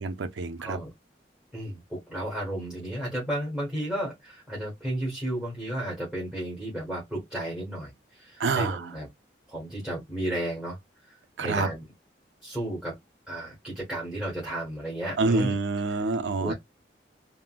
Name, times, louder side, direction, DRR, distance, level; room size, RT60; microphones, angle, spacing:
voice 1, 0.0-0.8 8.4-8.9 11.4-11.7 15.2-16.5, right 3 dB, 90° right, 0.5 m, -27 dB
voice 2, 1.5-9.1 9.5-10.8 11.0-11.8 12.4-13.0 13.3-15.5 16.4-16.5, right 1 dB, 5° right, 1.2 m, -33 dB
3.6 x 2.1 x 2.3 m
head